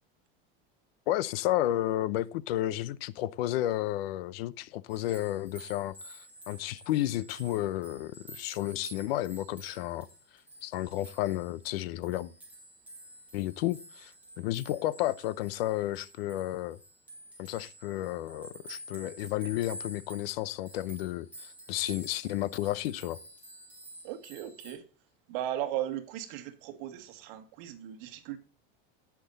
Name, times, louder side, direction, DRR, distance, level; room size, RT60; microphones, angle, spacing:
voice 1, 1.1-10.1 10.6-12.3 13.3-14.1 14.4-16.8 17.4-21.3 21.7-23.2, left 14 dB, 85° left, 0.8 m, -32 dB
sound 1, 4.9-24.7, right 1 dB, 5° right, 4.2 m, -50 dB
voice 2, 24.0-24.8 25.3-28.4, right 12 dB, 60° right, 1.8 m, -37 dB
18.0 x 6.2 x 4.0 m
supercardioid pair, 170°, 29 cm